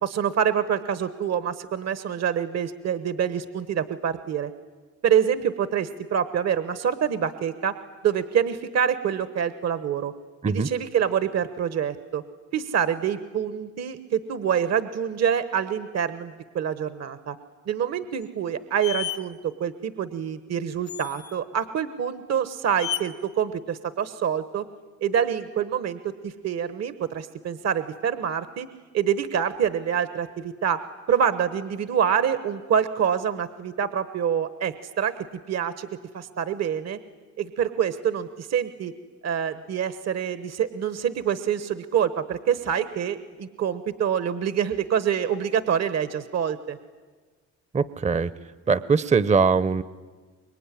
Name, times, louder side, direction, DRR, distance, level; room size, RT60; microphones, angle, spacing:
voice 1, 0.0-4.5 5.0-7.7 8.0-10.1 10.4-12.2 12.5-17.3 17.7-24.6 25.0-28.7 28.9-30.8 31.1-35.1 35.5-35.9 36.1-37.0 37.4-38.9 39.2-46.8, right 8 dB, 60° right, 13 dB, 1.1 m, -26 dB
sound 1, 18.2-18.3 18.8-19.2 20.9-21.4 22.8-23.0, left 10 dB, 65° left, 1.4 m, -31 dB
voice 2, 47.7-48.3 48.7-49.8, right 5 dB, 25° right, 17 dB, 0.7 m, -21 dB
25.5 x 22.0 x 10.0 m, 1.4 s
cardioid pair, 90°, 30 cm